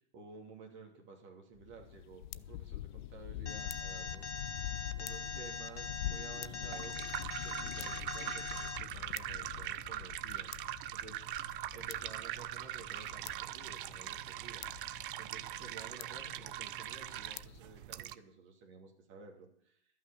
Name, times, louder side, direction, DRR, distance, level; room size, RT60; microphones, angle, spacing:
voice 1, 0.1-4.3 5.0-7.0 7.4-10.5 10.9-11.2 11.5-14.7 15.2-19.8, right 4 dB, 30° right, 2 dB, 2.6 m, -53 dB
sound 1, 1.5-17.6, left 14 dB, 45° left, 0.4 m, -46 dB
Alarm, 3.5-8.8, left 5 dB, 85° left, 1.0 m, -42 dB
sound 2, 6.4-18.2, right 13 dB, 50° right, 0.6 m, -42 dB
12.5 x 6.0 x 8.6 m, 0.67 s
hypercardioid pair, 115°, 35 cm